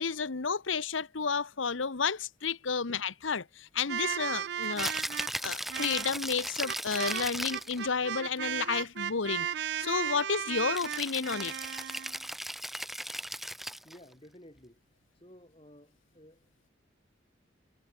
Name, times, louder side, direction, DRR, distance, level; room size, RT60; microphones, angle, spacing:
voice 1, 0.0-4.9 5.4-9.5 9.8-11.5, left 5 dB, 85° left, 1.0 m, -31 dB
voice 2, 1.0-1.6 2.9-3.4 13.8-14.8 15.1-16.7, equal, 30° left, 5.6 m, -56 dB
sound 1, 3.9-12.2, right 9 dB, 60° right, 0.4 m, -35 dB
Rattle (instrument), 4.6-7.8 10.7-14.0, equal, ahead, 0.6 m, -37 dB
head